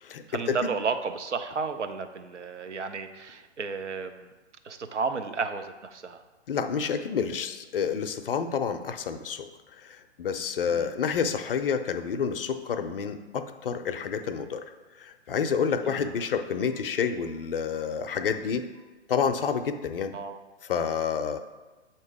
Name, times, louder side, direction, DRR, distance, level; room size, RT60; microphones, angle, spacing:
voice 1, 0.3-4.3 4.6-6.2 10.7-10.9 15.9-16.1 20.1-20.4, right 5 dB, 85° right, 7 dB, 0.6 m, -32 dB
voice 2, 6.5-9.5 9.8-14.6 15.0-18.6 19.1-20.1 20.6-21.4, left 6 dB, 55° left, 8 dB, 0.5 m, -29 dB
7.5 x 2.9 x 4.7 m, 1.2 s
figure-of-eight pair, 130°, 34 cm